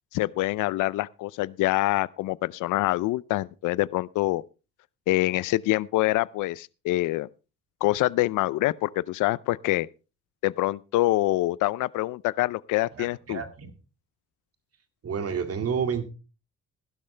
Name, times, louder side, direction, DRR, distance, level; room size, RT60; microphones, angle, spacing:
voice 1, 0.1-4.4 5.1-7.3 7.8-9.9 10.4-13.4, left 17 dB, 85° left, 0.5 m, -25 dB
voice 2, 13.0-13.7 15.0-16.1, right 6 dB, 50° right, 2.3 m, -30 dB
15.5 x 12.0 x 3.3 m
cardioid pair, 90°, 30 cm